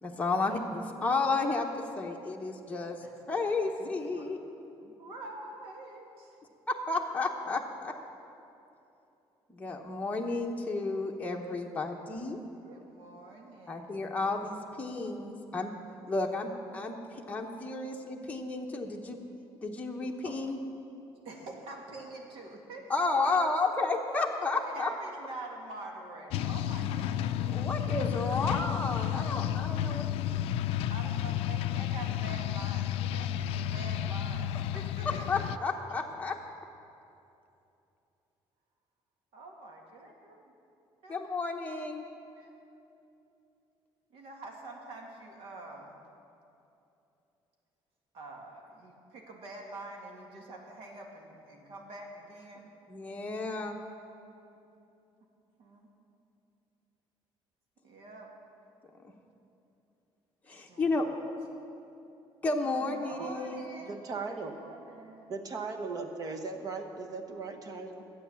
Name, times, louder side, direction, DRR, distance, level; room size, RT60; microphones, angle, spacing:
voice 1, 0.0-3.0 3.3-4.4 6.7-7.9 9.5-12.4 13.7-15.7 16.1-19.2 19.6-20.6 22.9-24.9 27.5-30.1 35.3-36.3 41.1-42.0 52.9-53.8 60.4-61.0 62.4-63.7, left 3 dB, 15° left, 0 dB, 1.0 m, -32 dB
voice 2, 3.0-3.5 4.1-4.3 4.8-6.4 12.6-14.3 16.0-16.2 20.2-20.3 21.2-23.5 24.6-27.6 30.9-35.5 39.3-40.5 41.0-41.5 42.0-42.5 44.1-46.0 48.1-52.7 55.6-55.9 57.8-58.3 60.5-60.9 62.6-64.0 64.3-65.3, right 2 dB, 75° right, 1 dB, 2.0 m, -46 dB
sound 1, 26.3-35.6, left 11 dB, 85° left, 0.4 m, -32 dB
voice 3, 63.9-64.5 65.3-68.0, right 4 dB, 40° right, 5 dB, 1.1 m, -38 dB
13.0 x 8.5 x 7.1 m, 2.8 s
cardioid pair, 140°, 10 cm